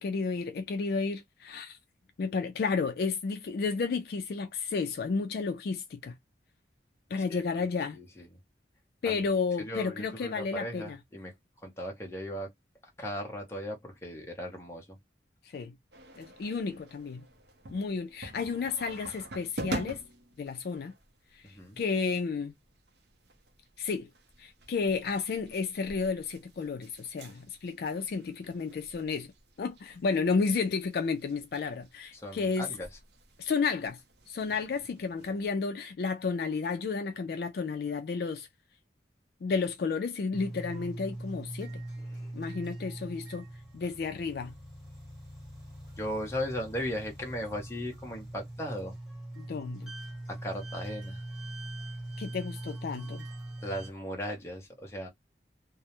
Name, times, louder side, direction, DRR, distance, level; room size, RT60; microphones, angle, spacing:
voice 1, 0.0-1.8 2.2-6.2 7.1-8.0 9.0-11.0 15.5-15.7 16.2-17.2 17.7-20.0 20.4-20.9 21.3-21.4 21.8-22.5 23.8-24.1 24.4-29.3 29.6-32.7 33.4-34.0 34.3-38.5 39.4-41.7 42.3-43.4 43.7-44.5 49.4-49.9 52.2-53.3, left 4 dB, 60° left, 0.3 m, -32 dB
voice 2, 7.9-8.4 9.0-9.2 9.6-12.5 13.0-15.0 21.4-21.8 32.1-32.9 42.0-42.3 46.0-49.0 50.3-51.2 53.6-55.1, equal, 15° left, 0.7 m, -37 dB
sound 1, 15.9-35.5, right 2 dB, 65° right, 0.6 m, -47 dB
sound 2, 40.3-53.9, right 1 dB, 5° right, 1.1 m, -42 dB
2.3 x 2.0 x 2.8 m
head